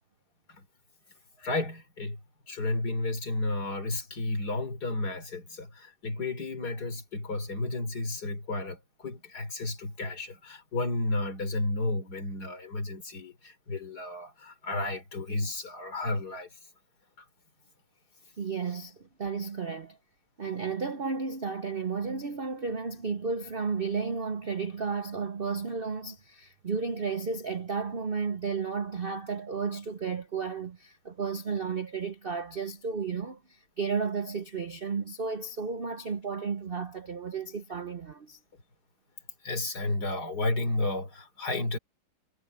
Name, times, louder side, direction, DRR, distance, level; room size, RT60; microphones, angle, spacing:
voice 1, 1.4-2.2 2.5-16.6 39.4-41.8, left 2 dB, 45° left, 4.1 m, -32 dB
voice 2, 18.4-20.0 20.4-38.4, right 5 dB, 85° right, 0.5 m, -33 dB
omnidirectional pair, 2.3 m